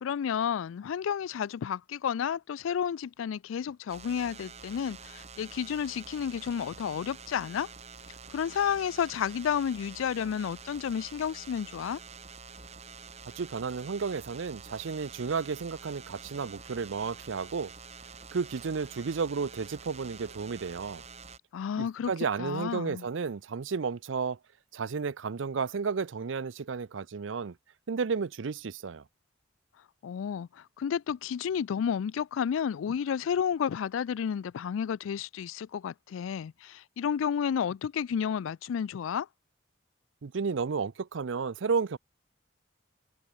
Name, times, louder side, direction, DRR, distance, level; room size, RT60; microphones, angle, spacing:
voice 1, 0.0-7.7 8.3-12.0 21.5-22.1 22.4-23.0 30.0-39.3, left 8 dB, 90° left, 0.3 m, -31 dB
sound 1, 3.9-21.4, right 5 dB, 35° right, 2.9 m, -48 dB
voice 2, 13.4-17.7 18.3-21.0 21.8-24.4 24.7-27.6 27.9-29.0 40.2-42.0, right 5 dB, 75° right, 0.5 m, -32 dB
head